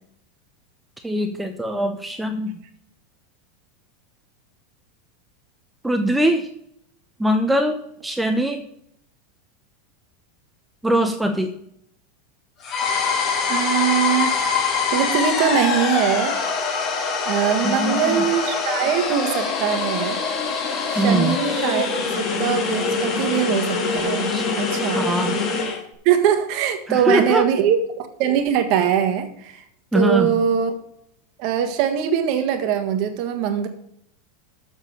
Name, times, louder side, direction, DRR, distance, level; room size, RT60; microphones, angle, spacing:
voice 1, 1.0-2.6 5.8-6.5 7.2-8.7 10.8-11.5 17.6-18.2 20.9-21.4 24.3-24.4 24.9-25.4 26.9-27.5 29.9-30.3, right 1 dB, 5° right, 5 dB, 0.8 m, -22 dB
sound 1, 12.6-25.8, left 5 dB, 45° left, 2.0 m, -24 dB
voice 2, 13.5-14.4 14.9-16.4 17.2-20.2 20.9-21.9 22.2-25.1 26.0-29.6 29.9-30.7 31.4-33.7, right 9 dB, 55° right, 7 dB, 1.4 m, -22 dB
7.4 x 6.3 x 6.5 m, 0.72 s
hypercardioid pair, 95°, 0 cm